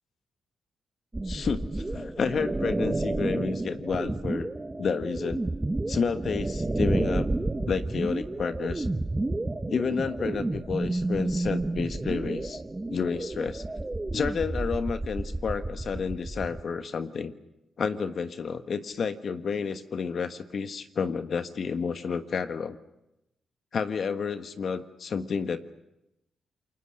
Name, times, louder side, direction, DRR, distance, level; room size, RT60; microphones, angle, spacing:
sound 1, 1.1-16.6, right 2 dB, 20° right, 1.5 m, -30 dB
voice 1, 1.2-4.5 4.8-5.4 5.9-7.3 7.7-8.9 9.7-12.6 12.9-13.6 14.1-17.3 17.8-22.8 23.7-25.6, left 5 dB, 60° left, 10 dB, 1.3 m, -30 dB
28.5 x 22.0 x 6.5 m, 0.91 s
supercardioid pair, 55°, 0 cm